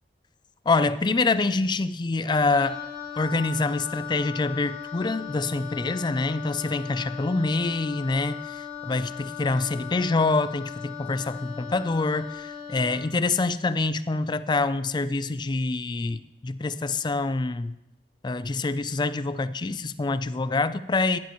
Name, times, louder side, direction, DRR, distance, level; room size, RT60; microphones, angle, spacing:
voice 1, 0.7-2.8 3.2-17.7 18.2-21.2, left 3 dB, 25° left, 13 dB, 0.4 m, -26 dB
Wind instrument woodwind instrument, 2.4-13.1, left 7 dB, 60° right, 3.1 m, -38 dB
15.5 x 10.5 x 3.1 m, 0.90 s
head